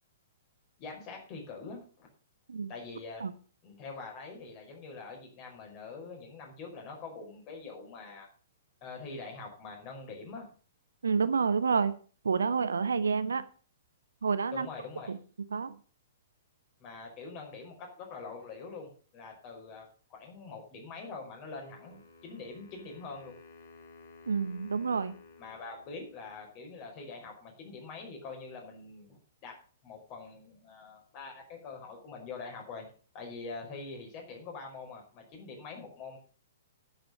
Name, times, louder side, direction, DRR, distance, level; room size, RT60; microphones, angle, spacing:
voice 1, 0.8-2.1 2.7-3.3 3.6-8.3 8.8-10.5 14.5-15.1 16.8-23.3 25.4-29.6 29.8-32.9 33.1-36.2, left 4 dB, 35° left, 2 dB, 5.3 m, -44 dB
voice 2, 11.0-12.0 12.2-13.4 14.2-14.7 15.1-15.2 15.5-15.8 24.2-25.2, right 5 dB, 70° right, 14 dB, 0.9 m, -28 dB
Wind instrument woodwind instrument, 21.5-26.5, left 3 dB, 60° left, 3.6 m, -55 dB
10.0 x 8.0 x 7.1 m, 0.40 s
figure-of-eight pair, 110°, 0 cm